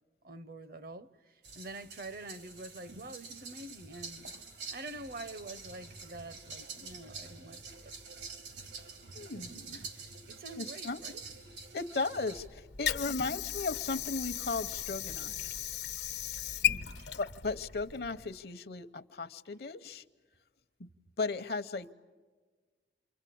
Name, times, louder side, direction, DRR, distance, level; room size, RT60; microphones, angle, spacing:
voice 1, 0.2-4.3 4.7-7.9 9.7-9.9 10.3-11.2 13.0-13.5 16.6-17.1, right 2 dB, 55° right, 0.8 m, -46 dB
sound 1, 1.4-12.5, right 4 dB, 85° right, 2.5 m, -47 dB
voice 2, 9.1-10.1 10.6-11.0 11.7-15.6 17.2-20.0 20.8-20.9 21.2-21.9, left 3 dB, 60° left, 0.7 m, -36 dB
Water / Sink (filling or washing), 12.4-18.4, left 10 dB, 85° left, 1.1 m, -36 dB
28.5 x 24.0 x 8.5 m
head